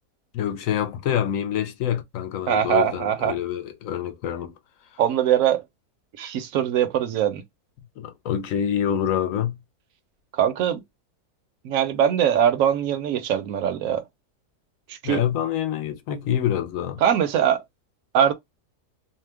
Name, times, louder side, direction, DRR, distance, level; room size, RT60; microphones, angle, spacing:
voice 1, 0.3-4.5 8.0-9.6 15.0-17.0, left 9 dB, 65° left, 0.9 m, -26 dB
voice 2, 2.5-3.4 5.0-5.6 6.2-7.4 10.3-10.8 11.6-14.0 14.9-15.2 17.0-17.6 18.1-18.3, right 9 dB, 65° right, 1.0 m, -22 dB
2.8 x 2.1 x 3.2 m
omnidirectional pair, 1.7 m